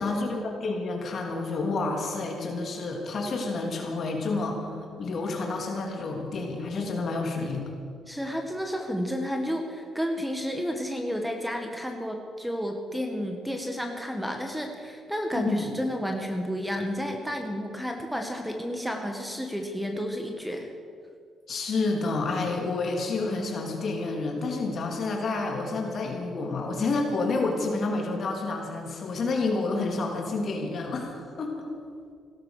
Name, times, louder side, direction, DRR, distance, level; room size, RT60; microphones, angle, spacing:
voice 1, 0.0-7.6 15.3-15.7 21.5-31.6, left 3 dB, 55° left, 1 dB, 3.2 m, -29 dB
voice 2, 8.1-20.7, equal, ahead, 4 dB, 1.7 m, -31 dB
16.5 x 12.5 x 6.6 m, 2.2 s
cardioid pair, 90°, 0 cm